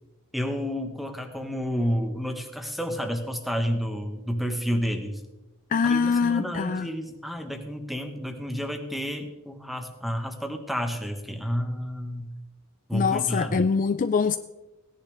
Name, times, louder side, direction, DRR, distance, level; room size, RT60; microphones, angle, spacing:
voice 1, 0.3-5.2 5.8-12.3 12.9-13.6, equal, ahead, 1.2 m, -30 dB
voice 2, 5.7-6.9 12.9-14.4, left 5 dB, 35° left, 0.3 m, -23 dB
17.0 x 10.5 x 3.4 m
head